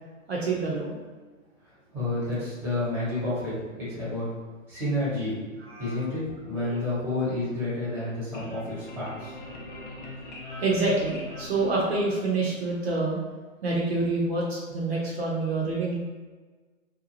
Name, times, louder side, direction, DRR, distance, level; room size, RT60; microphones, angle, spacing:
voice 1, 0.3-0.9 5.7-6.0 6.7-6.8 10.6-13.2 13.6-15.9, right 3 dB, 50° right, -4 dB, 0.7 m, -27 dB
voice 2, 1.9-4.3 4.7-5.4 5.8-9.4, left 2 dB, 5° right, -10 dB, 0.9 m, -30 dB
sound 1, 7.8-12.5, left 2 dB, 40° left, 0.5 m, -42 dB
2.6 x 2.2 x 2.9 m, 1.4 s
figure-of-eight pair, 130°, 40 cm